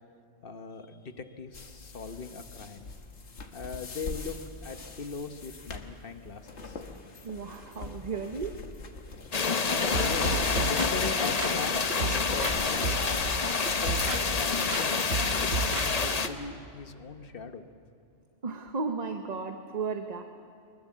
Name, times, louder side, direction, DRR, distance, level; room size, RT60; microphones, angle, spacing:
voice 1, 0.4-2.9 3.5-6.8 10.0-13.0 13.7-17.7, left 4 dB, 55° left, 8 dB, 1.2 m, -40 dB
sound 1, 1.5-15.2, left 3 dB, 85° left, 1.7 m, -42 dB
voice 2, 7.2-8.6 18.4-20.2, right 4 dB, 40° right, 6 dB, 1.0 m, -34 dB
sound 2, 9.3-16.3, left 4 dB, 40° left, 0.9 m, -28 dB
sound 3, 9.9-12.6 12.8-14.4 14.7-16.3, right 3 dB, 80° right, 1.8 m, -33 dB
23.5 x 20.5 x 7.4 m, 2.7 s
omnidirectional pair, 1.1 m